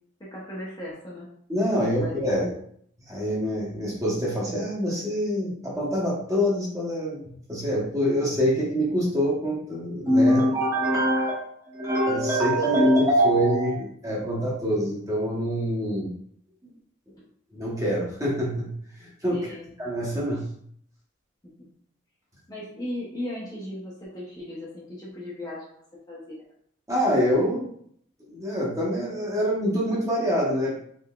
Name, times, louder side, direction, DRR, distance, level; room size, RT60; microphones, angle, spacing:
voice 1, 0.2-1.3 1.7-2.6 19.3-19.7 21.4-21.7 22.5-25.8 26.1-26.4, left 1 dB, 20° left, -6 dB, 0.7 m, -37 dB
voice 2, 1.5-2.5 3.1-16.1 17.5-18.7 19.0-19.4 19.8-20.5 26.9-27.7 28.2-30.8, equal, 15° right, -5 dB, 0.9 m, -24 dB
3.7 x 3.4 x 2.3 m, 0.65 s
head